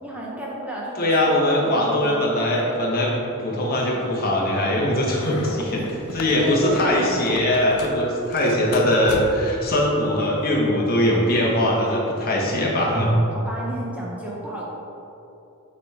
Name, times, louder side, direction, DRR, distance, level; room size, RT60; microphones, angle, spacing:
voice 1, 0.0-2.8 5.7-7.2 13.3-14.6, right 1 dB, 5° right, -5 dB, 0.8 m, -33 dB
voice 2, 1.0-3.1 3.4-5.8 6.1-13.1, left 1 dB, 40° left, -3 dB, 1.3 m, -21 dB
sound 1, 5.1-8.0 8.3-9.6, left 2 dB, 90° left, 0.7 m, -35 dB
9.1 x 3.5 x 4.9 m, 2.9 s
head